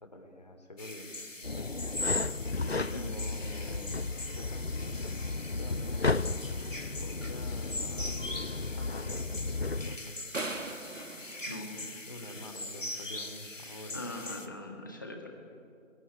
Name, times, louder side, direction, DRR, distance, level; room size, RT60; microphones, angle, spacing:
voice 1, 0.0-1.1 1.5-1.7 2.5-4.0 4.4-5.3 5.6-6.5 7.0-10.2 11.1-11.3 12.1-14.0, left 1 dB, 35° left, 5 dB, 3.1 m, -46 dB
sound 1, 0.8-14.5, left 2 dB, 80° left, 2.7 m, -41 dB
sound 2, 1.4-10.0, left 3 dB, 55° left, 0.8 m, -34 dB
sound 3, 10.3-12.5, right 2 dB, 90° right, 2.2 m, -39 dB
voice 2, 11.5-11.9 13.9-15.3, left 2 dB, 15° left, 2 dB, 1.8 m, -41 dB
27.0 x 22.0 x 9.8 m, 2.5 s
figure-of-eight pair, 170°, 38 cm